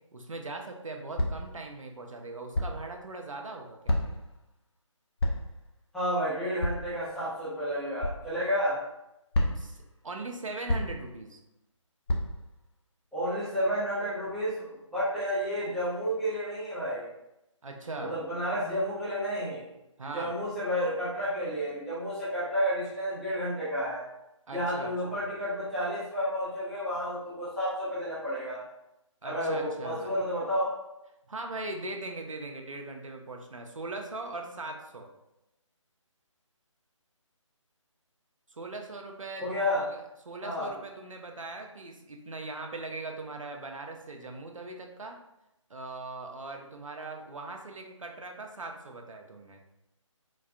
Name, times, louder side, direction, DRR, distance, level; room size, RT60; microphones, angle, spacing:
voice 1, 0.1-4.2 9.6-11.4 17.6-18.2 20.0-20.4 24.5-25.2 29.2-30.1 31.3-35.1 38.5-40.0 40.3-45.2 45.7-49.6, right 2 dB, 75° right, 3 dB, 0.6 m, -40 dB
sound 1, 1.2-1.5 2.5-2.9 3.9-4.3 5.2-5.6 6.6-6.9 8.0-8.2 9.3-9.8 10.7-11.1 12.1-12.5, left 1 dB, 50° left, 0.5 m, -29 dB
voice 2, 5.9-8.8 13.1-17.1 18.0-19.7 20.1-24.0 24.5-28.6 29.2-30.7 39.4-39.8 40.4-40.7, equal, ahead, -14 dB, 0.5 m, -31 dB
4.1 x 2.1 x 2.4 m, 0.89 s
figure-of-eight pair, 150°, 17 cm